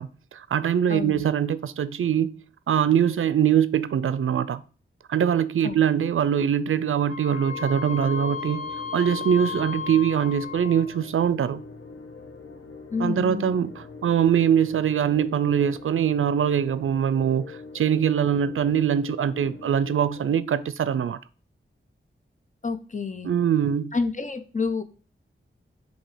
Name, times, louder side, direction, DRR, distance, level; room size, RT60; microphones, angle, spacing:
voice 1, 0.0-2.3 2.7-4.6 5.1-8.7 8.9-11.6 13.0-13.7 14.0-21.2 23.2-23.9, right 8 dB, 80° right, 0.4 m, -23 dB
voice 2, 0.9-1.2 5.6-5.7 12.9-13.5 22.6-23.3 23.9-24.8, left 4 dB, 35° left, 0.7 m, -28 dB
Wind instrument woodwind instrument, 7.1-11.0, left 6 dB, 15° right, 2.0 m, -34 dB
sound 1, 7.4-20.3, left 3 dB, 80° left, 1.0 m, -43 dB
7.4 x 2.8 x 4.9 m
wide cardioid pair, 70°, 21 cm